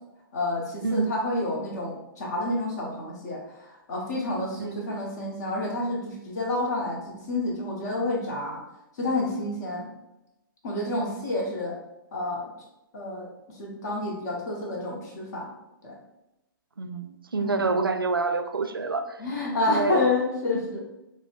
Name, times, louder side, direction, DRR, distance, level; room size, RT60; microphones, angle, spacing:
voice 1, 0.3-8.6 9.0-9.9 10.6-11.7 12.1-12.5 12.9-15.5 15.8-15.9 17.4-17.6 19.2-20.8, left 2 dB, 50° left, -1 dB, 1.0 m, -29 dB
voice 2, 16.8-19.2 19.7-20.0, right 4 dB, 85° right, 7 dB, 0.4 m, -27 dB
5.3 x 2.1 x 2.4 m, 0.94 s
figure-of-eight pair, 115°, 12 cm